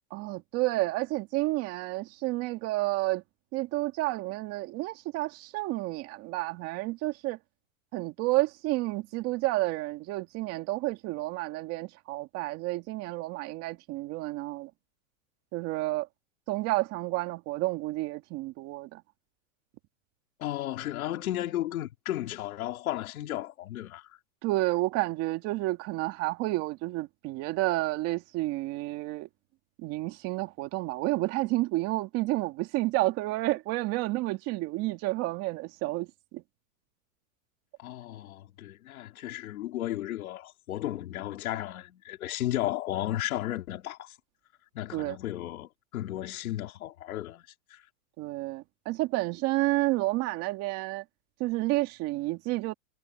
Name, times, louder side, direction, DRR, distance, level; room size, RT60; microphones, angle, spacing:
voice 1, 0.1-3.2 3.5-7.4 7.9-14.7 15.5-16.1 16.5-19.0 24.4-29.3 29.8-36.4 44.9-45.2 48.2-51.0 51.4-52.7, right 19 dB, 35° right, 2.2 m, -30 dB
voice 2, 20.4-24.1 37.8-44.1 44.7-47.5 47.7-47.8, left 14 dB, 90° left, 3.6 m, -34 dB
supercardioid pair, 160°, 41 cm